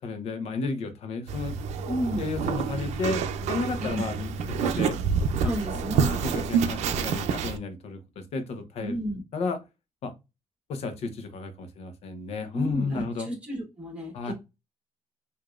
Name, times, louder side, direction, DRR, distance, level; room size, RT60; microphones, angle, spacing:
voice 1, 0.0-1.6 2.2-3.2 3.5-4.3 4.6-5.0 5.4-5.8 6.2-8.0 8.3-9.0 9.3-9.6 10.0-10.1 10.7-13.3 14.1-14.3, left 4 dB, 65° left, 8 dB, 0.9 m, -32 dB
sound 1, 1.3-7.6, right 6 dB, 90° right, 0.5 m, -28 dB
voice 2, 1.9-2.3 3.8-4.1 5.4-6.2 8.8-9.2 12.5-14.3, equal, 10° right, -1 dB, 2.3 m, -32 dB
4.9 x 2.8 x 2.4 m, 0.24 s
cardioid pair, 150°, 12 cm